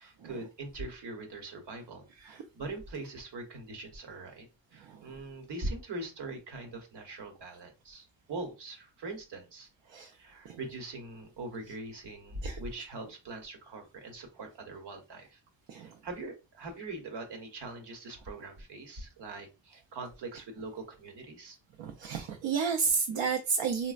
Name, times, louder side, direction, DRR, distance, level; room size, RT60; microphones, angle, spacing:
voice 1, 0.0-9.7 10.0-15.4 15.8-21.6, right 2 dB, 65° right, 1.0 m, -42 dB
voice 2, 21.8-23.9, right 5 dB, 85° right, 0.6 m, -31 dB
4.1 x 2.1 x 2.3 m
wide cardioid pair, 150°, 44 cm